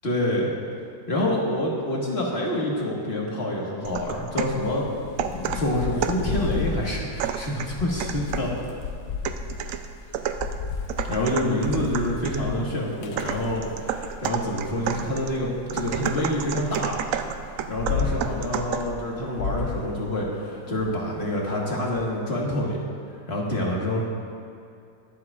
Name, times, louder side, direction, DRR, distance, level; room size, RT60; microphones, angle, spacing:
voice 1, 0.0-0.5 1.1-4.9 5.5-8.5 9.6-9.7 11.0-17.0 17.7-22.8 23.3-24.1, left 1 dB, 40° left, -3 dB, 1.6 m, -27 dB
sound 1, 3.8-4.6 5.2-6.3 7.2-8.6 9.2-12.5 13.2-19.0, right 8 dB, 70° right, 0.8 m, -31 dB
Thunder / Rain, 4.5-14.2 14.7-16.6 17.2-22.0, left 5 dB, 70° left, 1.3 m, -34 dB
21.5 x 7.7 x 2.4 m, 2.5 s
omnidirectional pair, 1.8 m